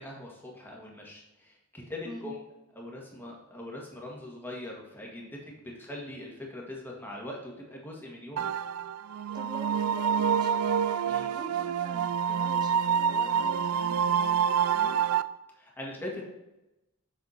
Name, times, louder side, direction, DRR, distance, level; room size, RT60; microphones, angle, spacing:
voice 1, 0.0-2.4 2.8-8.5 11.1-11.3 15.5-16.2, left 1 dB, 10° left, -2 dB, 1.7 m, -41 dB
sound 1, 8.4-15.2, right 7 dB, 85° right, 0.4 m, -27 dB
voice 2, 9.3-10.7 11.3-15.0, right 1 dB, 20° right, 2 dB, 1.1 m, -45 dB
6.8 x 6.7 x 4.4 m, 0.95 s
head